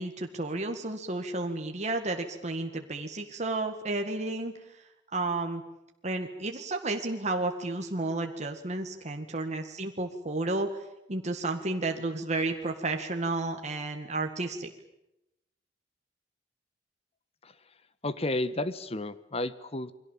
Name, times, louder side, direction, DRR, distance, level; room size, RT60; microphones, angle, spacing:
voice 1, 0.0-4.5 5.1-5.6 6.0-10.8 11.1-14.7, right 2 dB, 40° right, 4 dB, 1.9 m, -32 dB
voice 2, 18.0-19.9, left 2 dB, 35° left, 14 dB, 1.2 m, -32 dB
29.0 x 22.5 x 7.4 m, 0.87 s
head